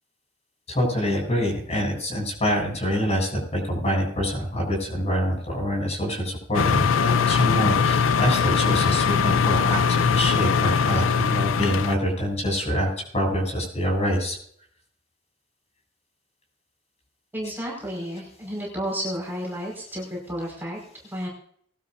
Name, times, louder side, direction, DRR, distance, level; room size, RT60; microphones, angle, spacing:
voice 1, 0.7-14.4, equal, 35° left, 0 dB, 7.5 m, -25 dB
sound 1, 6.5-11.9, left 6 dB, 90° left, 0.6 m, -21 dB
voice 2, 17.3-21.3, equal, 10° right, -3 dB, 5.3 m, -32 dB
21.0 x 12.5 x 2.7 m, 0.63 s
head